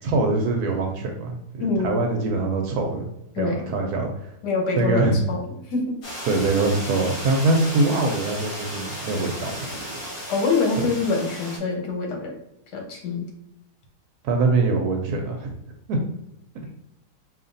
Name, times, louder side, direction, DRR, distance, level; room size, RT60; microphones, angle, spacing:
voice 1, 0.0-3.1 3.4-4.3 4.8-5.2 6.3-9.6 10.8-10.9 14.2-15.5 15.9-16.0, right 3 dB, 75° right, 2 dB, 1.1 m, -23 dB
voice 2, 1.6-2.0 3.3-3.7 4.4-6.0 10.3-12.3 12.7-13.3, left 4 dB, 85° left, 2 dB, 1.4 m, -25 dB
sound 1, 6.0-11.6, equal, 60° left, 1.8 m, -34 dB
4.9 x 2.6 x 2.6 m, 0.82 s
omnidirectional pair, 1.8 m